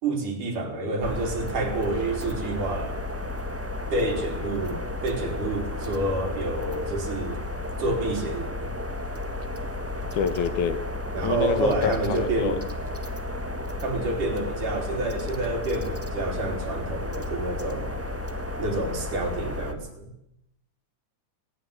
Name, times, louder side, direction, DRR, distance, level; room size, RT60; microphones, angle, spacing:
voice 1, 0.0-3.0 3.9-7.4 7.8-8.7 11.1-12.6 13.8-18.0 18.6-20.1, right 2 dB, 90° right, 3 dB, 5.5 m, -28 dB
sound 1, 1.0-19.7, left 1 dB, 5° right, 1.1 m, -33 dB
voice 2, 10.1-10.8 11.2-12.6, left 7 dB, 75° left, 12 dB, 2.9 m, -26 dB
20.0 x 19.0 x 8.2 m, 0.80 s
omnidirectional pair, 3.5 m